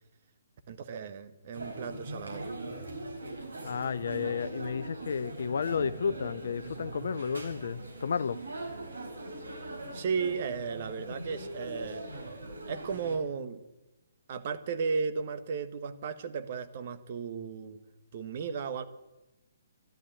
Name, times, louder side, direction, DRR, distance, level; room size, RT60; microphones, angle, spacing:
voice 1, 0.7-2.5 9.9-12.1 12.7-13.6 14.3-17.8 18.1-18.8, right 5 dB, 45° right, 1.3 m, -34 dB
sound 1, 1.5-13.2, right 2 dB, 80° right, 4.4 m, -41 dB
voice 2, 3.6-8.4, left 6 dB, 60° left, 0.5 m, -32 dB
13.5 x 12.0 x 8.8 m
figure-of-eight pair, 130°, 0 cm